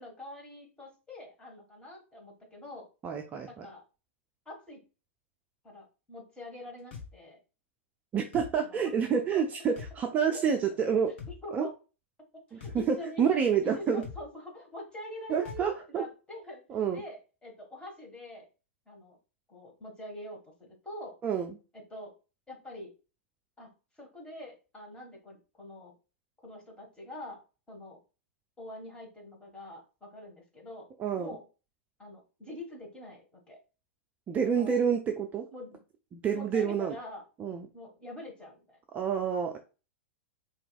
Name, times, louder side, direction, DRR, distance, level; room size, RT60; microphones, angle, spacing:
voice 1, 0.0-2.9 3.5-3.8 4.4-4.8 5.6-7.4 8.6-9.0 9.3-9.4 10.3-10.4 11.3-11.7 12.5-13.3 13.6-16.6 16.9-18.5 18.9-19.2 19.5-21.2 21.7-22.1 22.5-22.9 23.6-23.7 24.0-25.9 26.4-27.4 27.7-28.0 28.6-30.9 31.2-31.4 32.0-33.6 34.4-34.8 35.5-35.8 36.3-37.2 37.7-38.8, left 1 dB, 15° left, -1 dB, 1.6 m, -45 dB
voice 2, 3.0-3.7 8.1-11.1 11.5-11.7 12.5-14.0 15.3-16.0 16.7-17.0 21.2-21.5 31.0-31.3 34.3-35.5 36.1-37.0 37.4-37.7 38.9-39.6, right 7 dB, 20° right, 4 dB, 0.4 m, -28 dB
sound 1, 6.9-7.1 8.3-8.5 9.8-9.9 11.2-11.4 12.6-12.8 14.0-14.2 15.4-15.6, left 6 dB, 55° left, 1.2 m, -42 dB
4.5 x 2.9 x 2.4 m, 0.32 s
figure-of-eight pair, 95°, 7 cm